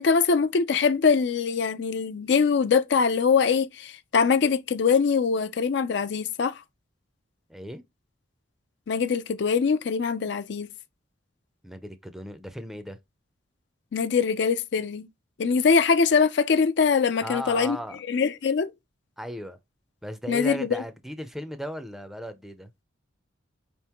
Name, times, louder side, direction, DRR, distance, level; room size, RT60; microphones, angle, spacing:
voice 1, 0.0-6.5 8.9-10.7 13.9-15.1 15.4-17.8 18.1-18.7 20.3-20.8, left 5 dB, 60° left, 0.4 m, -23 dB
voice 2, 7.5-7.8 11.6-13.0 17.2-18.0 19.2-19.6 20.0-22.7, equal, ahead, 0.5 m, -36 dB
5.0 x 3.5 x 2.9 m
head